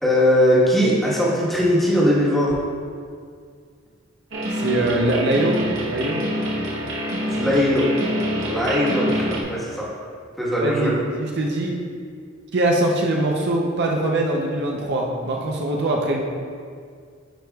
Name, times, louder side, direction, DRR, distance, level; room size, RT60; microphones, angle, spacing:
voice 1, 0.0-2.6 7.4-7.9 8.4-9.8 10.4-10.9, equal, ahead, -7 dB, 1.3 m, -19 dB
sound 1, 4.3-9.4, equal, 75° right, 1.0 m, -26 dB
voice 2, 4.5-6.2 10.6-11.8 12.5-16.2, right 1 dB, 55° right, 0 dB, 0.6 m, -22 dB
10.0 x 4.8 x 2.3 m, 2.1 s
head